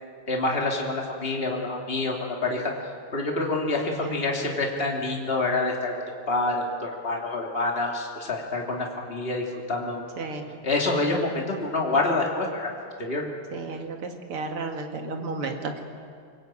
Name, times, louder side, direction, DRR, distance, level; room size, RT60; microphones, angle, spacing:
voice 1, 0.3-2.7 3.1-5.9 6.3-10.1 10.6-12.7 13.0-13.3, left 2 dB, 25° left, 0 dB, 3.1 m, -27 dB
voice 2, 13.5-15.8, right 3 dB, 85° right, 4 dB, 3.0 m, -33 dB
23.5 x 21.5 x 8.9 m, 2.3 s
omnidirectional pair, 2.4 m